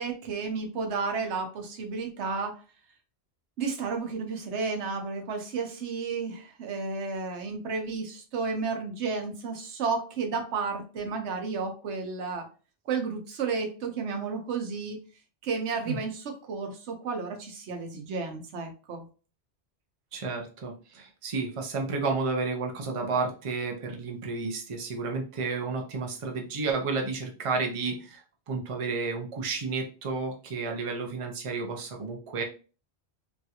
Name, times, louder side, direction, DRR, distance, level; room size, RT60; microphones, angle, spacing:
voice 1, 0.0-2.6 3.6-12.5 12.9-15.0 15.4-19.1, right 4 dB, 90° right, 4 dB, 1.0 m, -32 dB
voice 2, 20.1-28.2 28.5-32.4, right 4 dB, 35° right, 2 dB, 0.6 m, -31 dB
3.1 x 2.4 x 2.7 m, 0.35 s
omnidirectional pair, 1.1 m